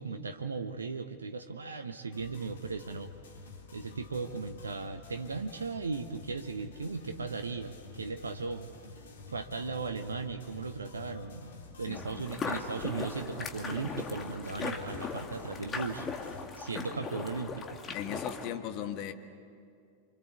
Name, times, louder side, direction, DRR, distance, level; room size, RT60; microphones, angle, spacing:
voice 1, 0.0-3.1 3.7-8.7 9.3-16.1 16.6-17.8, right 4 dB, 75° right, 7 dB, 1.0 m, -37 dB
sound 1, 2.1-16.4, left 4 dB, 60° left, 3.3 m, -50 dB
voice 2, 11.9-12.4 17.9-19.1, left 10 dB, 40° left, 7 dB, 1.6 m, -38 dB
sound 2, 11.9-18.5, left 5 dB, 25° left, 2.3 m, -38 dB
28.0 x 25.5 x 8.3 m, 2.4 s
figure-of-eight pair, 90°, 0 cm